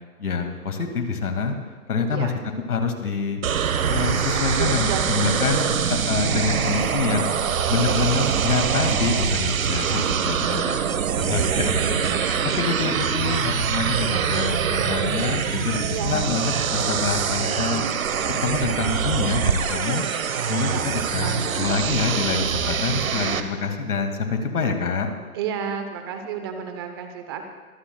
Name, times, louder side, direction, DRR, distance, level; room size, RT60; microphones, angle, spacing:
voice 1, 0.2-1.5 1.9-2.3 2.7-3.4 3.8-10.8 11.2-20.0 20.5-25.1, left 5 dB, 80° left, 5 dB, 2.3 m, -26 dB
sound 1, 3.4-23.4, right 7 dB, 65° right, 1.3 m, -24 dB
voice 2, 4.5-5.8 6.2-6.5 7.8-8.6 9.7-10.1 10.5-11.6 15.9-16.3 20.7-21.8 25.3-27.4, right 7 dB, 15° right, 6 dB, 0.8 m, -33 dB
24.0 x 14.0 x 2.3 m, 1.5 s
hypercardioid pair, 155°, 44 cm